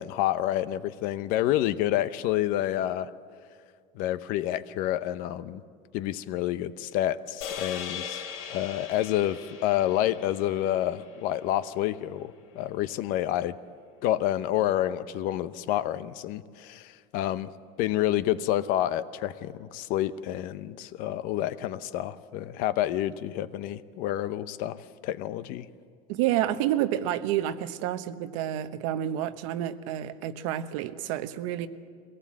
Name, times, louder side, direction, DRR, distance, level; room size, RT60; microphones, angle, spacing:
voice 1, 0.0-3.1 3.9-5.6 5.9-8.2 8.5-13.5 14.0-17.5 17.8-24.8 25.0-25.7, left 13 dB, 55° left, 14 dB, 0.7 m, -28 dB
sound 1, 7.4-11.8, left 7 dB, 85° left, 3.2 m, -40 dB
voice 2, 26.1-31.7, right 12 dB, 75° right, 11 dB, 1.0 m, -29 dB
23.0 x 18.0 x 7.5 m, 2.1 s
cardioid pair, 150°, 17 cm